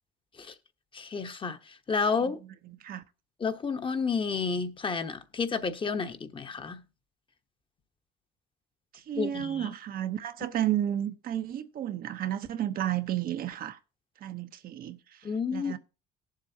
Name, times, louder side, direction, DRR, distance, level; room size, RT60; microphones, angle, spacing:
voice 1, 0.9-2.4 3.4-6.8 9.1-9.7 15.2-15.7, left 5 dB, 30° left, 1.1 m, -31 dB
voice 2, 2.7-3.0 8.9-13.8 14.2-15.8, right 11 dB, 60° right, 1.0 m, -32 dB
18.5 x 7.5 x 2.8 m
cardioid pair, 110°, 17 cm